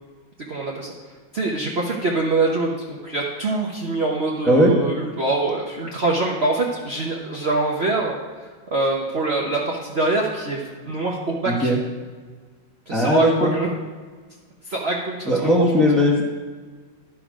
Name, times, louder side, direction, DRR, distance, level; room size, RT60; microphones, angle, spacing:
voice 1, 0.5-0.9 1.3-11.7 12.9-13.7 14.7-15.7, right 2 dB, 45° right, -2 dB, 1.0 m, -24 dB
voice 2, 11.5-11.8 12.9-13.5 15.3-16.2, equal, ahead, -2 dB, 1.2 m, -18 dB
11.5 x 6.1 x 5.1 m, 1.5 s
omnidirectional pair, 2.1 m